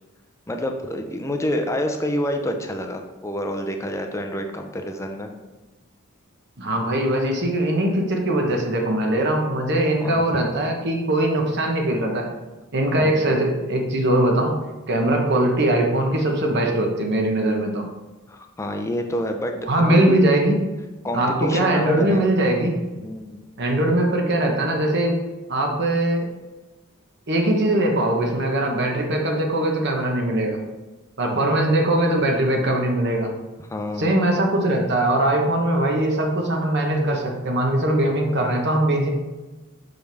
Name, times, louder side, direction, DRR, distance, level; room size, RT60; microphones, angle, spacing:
voice 1, 0.5-5.3 10.0-10.2 13.0-13.2 18.3-19.5 19.9-20.2 21.0-22.3 23.0-23.4 31.2-31.5 33.7-34.2, left 1 dB, 15° left, 4 dB, 0.5 m, -28 dB
voice 2, 6.6-12.3 12.7-14.5 14.9-17.9 19.7-20.6 21.1-22.7 23.6-25.2 25.5-26.3 27.3-30.6 31.2-33.3 34.0-39.1, right 1 dB, 55° right, 2 dB, 1.0 m, -21 dB
6.1 x 5.2 x 3.4 m, 1.1 s
head